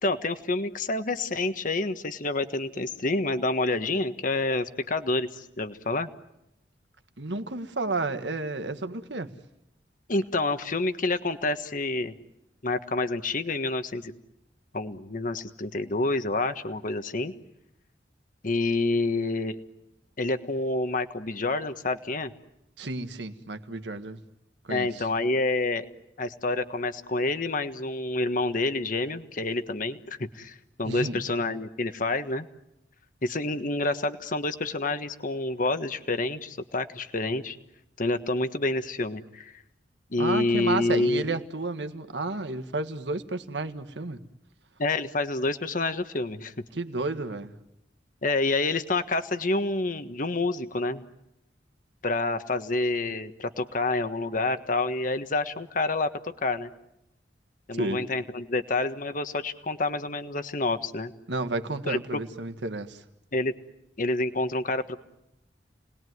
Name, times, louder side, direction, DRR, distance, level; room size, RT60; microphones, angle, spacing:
voice 1, 0.0-6.1 10.1-12.1 12.6-14.1 14.7-17.3 18.4-19.6 20.2-22.3 24.7-25.9 26.2-32.5 33.2-37.6 38.0-39.5 40.1-41.3 44.8-46.5 48.2-51.0 52.0-56.7 57.7-61.1 61.8-62.2 63.3-63.5 64.0-65.0, left 2 dB, 50° left, 9 dB, 1.4 m, -28 dB
voice 2, 7.2-9.3 22.8-24.2 24.7-25.0 30.8-31.2 40.2-44.2 46.7-47.5 57.7-58.0 61.3-63.0, right 2 dB, 85° right, 9 dB, 1.7 m, -31 dB
30.0 x 20.5 x 9.5 m, 0.87 s
head